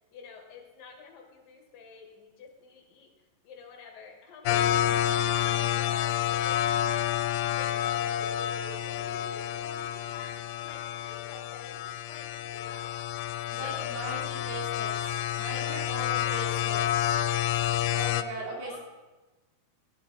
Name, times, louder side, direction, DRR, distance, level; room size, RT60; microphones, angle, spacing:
voice 1, 0.1-3.1 3.4-4.6 5.0-6.6 7.5-13.0 13.6-14.8 15.4-15.8 16.3-16.7 18.4-18.8, left 5 dB, 65° left, 2 dB, 3.1 m, -48 dB
sound 1, 4.4-18.2, left 11 dB, 85° left, 2.5 m, -29 dB
voice 2, 4.4-5.0 13.5-15.1 15.4-16.9 17.9-18.8, right 2 dB, 80° right, -2 dB, 4.5 m, -39 dB
14.0 x 11.5 x 4.0 m, 1.2 s
omnidirectional pair, 4.4 m